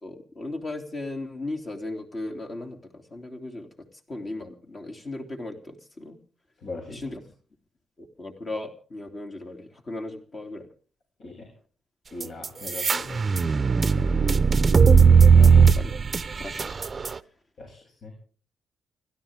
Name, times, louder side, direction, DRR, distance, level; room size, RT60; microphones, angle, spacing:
voice 1, 0.0-3.7 4.1-6.2 6.9-7.2 8.0-10.7 14.1-14.5 15.3-16.0 16.3-16.7, left 2 dB, 35° left, 3 dB, 3.1 m, -36 dB
voice 2, 6.6-7.1 11.2-11.5 12.1-13.2 17.6-18.1, left 3 dB, 55° left, 1 dB, 7.8 m, -39 dB
sound 1, 12.2-17.1, right 6 dB, 30° right, 0.9 m, -17 dB
29.5 x 12.5 x 3.7 m, 0.42 s
cardioid pair, 125°, 0 cm